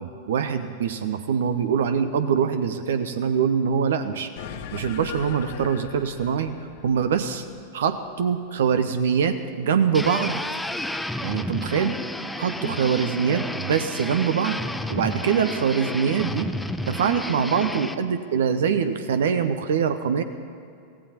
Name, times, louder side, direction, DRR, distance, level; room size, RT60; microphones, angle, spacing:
voice 1, 0.0-4.3 4.7-6.5 6.8-7.5 7.7-10.4 11.2-11.9 12.4-14.6 14.9-16.5 16.9-20.2, right 7 dB, 60° right, 10 dB, 0.7 m, -24 dB
sound 1, 4.4-9.1, left 7 dB, 50° left, 0.9 m, -40 dB
sound 2, 9.9-18.0, left 1 dB, 5° left, 0.6 m, -31 dB
24.0 x 16.5 x 2.9 m, 2.5 s
figure-of-eight pair, 90°, 0 cm